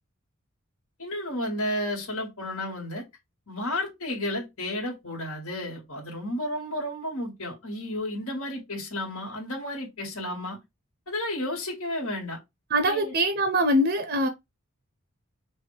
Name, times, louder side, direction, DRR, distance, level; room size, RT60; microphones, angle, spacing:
voice 1, 1.0-3.0 3.5-10.6 11.1-12.4 12.8-13.1, left 1 dB, 70° left, 2.1 m, -32 dB
voice 2, 12.7-14.3, equal, 50° right, 0.7 m, -23 dB
5.7 x 2.6 x 3.3 m
head